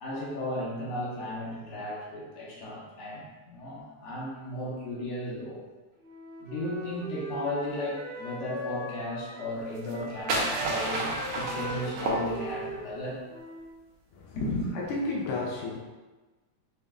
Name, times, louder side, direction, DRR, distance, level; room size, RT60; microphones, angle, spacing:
voice 1, 0.0-5.6 6.4-13.2 14.3-14.7, left 1 dB, 60° left, -5 dB, 1.7 m, -35 dB
Wind instrument woodwind instrument, 6.0-9.7 9.9-13.8, equal, 55° right, 0.8 m, -40 dB
sound 1, 9.8-12.8, right 2 dB, 80° right, 1.2 m, -31 dB
voice 2, 14.7-15.8, left 2 dB, 90° left, -2 dB, 1.3 m, -32 dB
6.4 x 3.3 x 2.3 m, 1.2 s
omnidirectional pair, 3.5 m